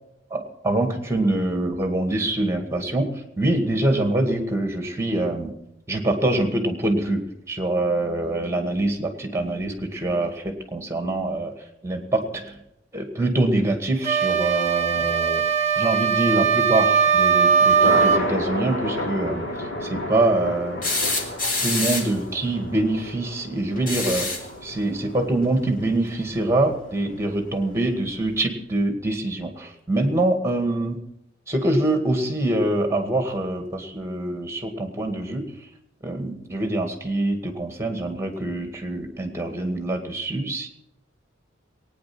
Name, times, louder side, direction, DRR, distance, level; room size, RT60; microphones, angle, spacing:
voice 1, 0.3-3.1 3.4-5.5 5.9-11.5 11.8-12.6 12.9-15.4 15.8-20.8 21.6-24.3 24.6-31.0 31.5-35.5 36.0-40.7, right 2 dB, 15° right, 5 dB, 2.1 m, -24 dB
sound 1, 14.0-18.3, right 6 dB, 35° right, 0.8 m, -19 dB
Thunder, 17.0-28.3, left 1 dB, 70° left, 4.1 m, -33 dB
sound 2, 20.8-22.2 23.8-24.5 26.2-26.3 27.8-27.9, left 3 dB, 45° left, 2.4 m, -26 dB
21.0 x 9.7 x 6.2 m, 0.82 s
head